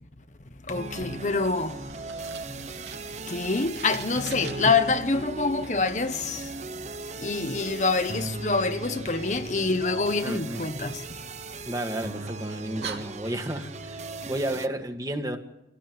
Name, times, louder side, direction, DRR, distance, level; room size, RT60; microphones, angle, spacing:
voice 1, 0.6-11.1 11.5-11.7, left 3 dB, 45° left, 1.2 m, -27 dB
sound 1, 0.7-14.7, right 3 dB, 40° right, 0.9 m, -38 dB
Fire, 1.8-4.8 10.7-11.9 12.4-12.5 12.8-14.0, right 6 dB, 80° right, 3.4 m, -43 dB
voice 2, 10.2-10.6 11.7-15.4, right 1 dB, 20° right, 1.9 m, -32 dB
27.0 x 17.5 x 9.6 m
head